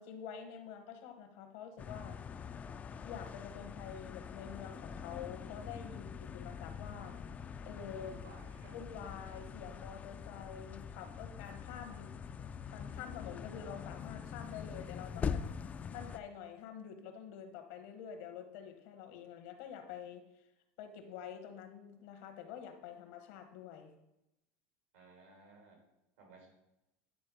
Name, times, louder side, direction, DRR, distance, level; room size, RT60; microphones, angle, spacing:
voice 1, 0.0-2.2 3.0-7.2 7.6-8.2 8.7-12.2 12.7-15.4 15.9-20.5 20.8-23.9, left 8 dB, 75° left, 6 dB, 1.3 m, -47 dB
sound 1, 1.8-16.2, left 6 dB, 25° left, 0.4 m, -44 dB
voice 2, 8.0-8.7 24.9-25.8 26.2-26.5, right 3 dB, 90° right, 0 dB, 3.4 m, -57 dB
9.5 x 4.4 x 4.9 m, 0.89 s
supercardioid pair, 125°, 6 cm